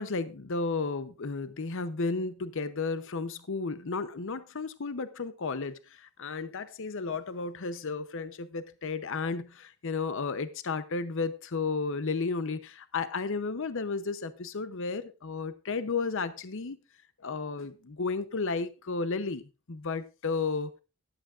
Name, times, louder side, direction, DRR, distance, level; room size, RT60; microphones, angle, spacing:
voice 1, 0.0-16.8 17.2-19.4 19.7-20.7, left 4 dB, 60° left, 0.7 m, -33 dB
13.5 x 11.5 x 2.5 m
head